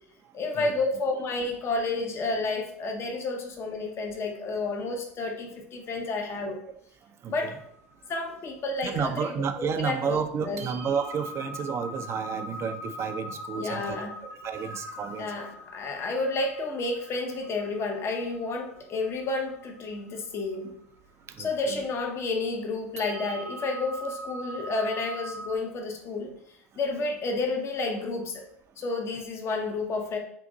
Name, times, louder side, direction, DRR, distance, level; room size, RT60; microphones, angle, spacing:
voice 1, 0.3-6.6 7.3-7.5 8.1-10.7 13.5-14.1 15.2-20.7 21.4-26.3 26.8-28.4 28.8-30.2, left 3 dB, 35° left, 2 dB, 0.7 m, -31 dB
sound 1, 7.3-9.6 10.1-10.2 10.6-25.6, equal, 90° right, 0.4 m, -42 dB
voice 2, 8.8-14.0 14.4-15.3 21.4-21.8, right 7 dB, 35° right, 7 dB, 0.5 m, -31 dB
3.8 x 2.5 x 3.9 m, 0.70 s
hypercardioid pair, 85°, 8 cm